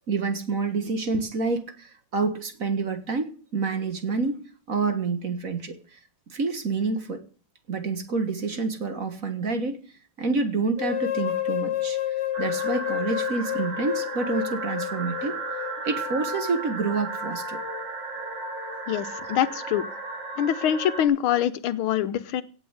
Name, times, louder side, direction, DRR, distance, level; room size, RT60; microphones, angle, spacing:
voice 1, 0.1-6.0 6.3-7.2 7.7-9.8 10.2-12.0 12.4-15.4 15.8-17.6, right 4 dB, 45° right, 8 dB, 1.8 m, -28 dB
sound 1, 10.8-16.8, left 13 dB, 60° left, 1.6 m, -30 dB
sound 2, 12.3-21.0, right 3 dB, 60° right, 3.1 m, -34 dB
voice 2, 18.9-19.9 20.4-22.4, left 10 dB, 90° left, 13 dB, 1.8 m, -24 dB
17.0 x 6.6 x 8.0 m, 0.40 s
omnidirectional pair, 2.3 m